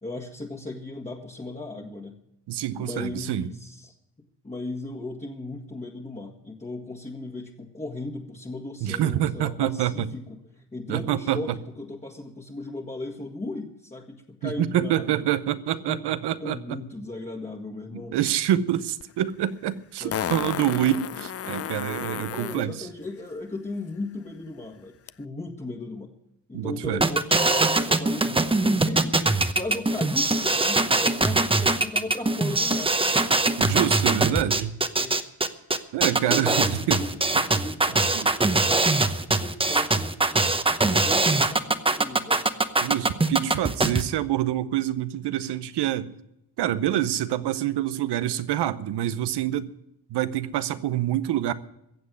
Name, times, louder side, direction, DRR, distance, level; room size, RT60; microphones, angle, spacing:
voice 1, 0.0-2.2 2.8-4.0 4.4-15.1 15.9-16.0 16.4-18.2 20.0-20.2 20.8-20.9 22.2-26.1 26.5-32.9 35.0-35.2 36.0-42.5, left 2 dB, 15° left, 1.6 m, -37 dB
voice 2, 2.5-3.5 8.8-10.1 10.9-11.6 14.4-16.8 18.1-22.9 26.5-27.0 33.6-34.7 35.9-37.0 38.1-38.3 42.8-46.1 46.6-49.7 50.1-51.5, right 12 dB, 85° right, 0.8 m, -26 dB
Fart, 19.0-19.1 20.1-22.6 25.1-25.2, left 9 dB, 40° left, 0.5 m, -32 dB
sound 1, 27.0-44.0, right 2 dB, 15° right, 0.9 m, -22 dB
15.0 x 7.6 x 9.4 m
cardioid pair, 85°, 39 cm